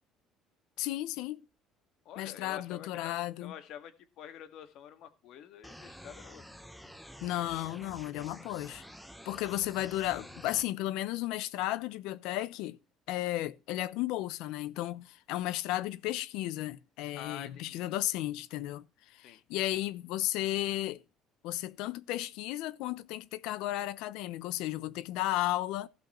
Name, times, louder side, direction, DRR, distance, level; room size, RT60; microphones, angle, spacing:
voice 1, 0.8-1.4 2.2-3.5 7.2-8.8 9.2-12.8 13.1-21.0 21.4-25.9, left 15 dB, 85° left, 0.8 m, -34 dB
voice 2, 2.1-6.4 9.8-10.0 17.1-17.8 19.2-19.4, left 9 dB, 65° left, 1.9 m, -47 dB
sound 1, 5.6-10.6, equal, ahead, 0.9 m, -49 dB
16.0 x 5.8 x 4.3 m
cardioid pair, 130°, 0 cm